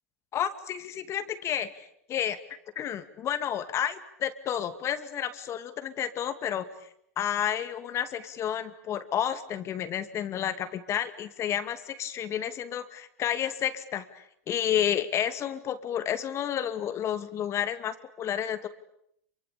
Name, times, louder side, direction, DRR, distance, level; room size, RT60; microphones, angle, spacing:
voice 1, 0.3-2.4 2.8-6.6 7.2-18.7, left 10 dB, 35° left, 10 dB, 2.5 m, -31 dB
27.5 x 24.5 x 8.6 m, 0.74 s
hypercardioid pair, 110°, 8 cm